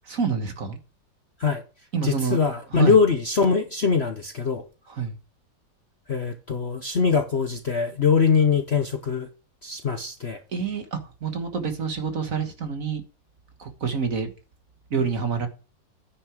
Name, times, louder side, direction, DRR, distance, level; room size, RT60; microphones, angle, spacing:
voice 1, 0.1-0.8 1.9-2.4 2.7-3.0 4.9-5.2 10.5-13.0 13.6-14.3 14.9-15.5, right 6 dB, 50° right, 1.7 m, -27 dB
voice 2, 2.0-4.6 6.1-9.3 9.6-10.4, left 5 dB, 45° left, 0.9 m, -22 dB
9.8 x 6.1 x 5.0 m
omnidirectional pair, 2.0 m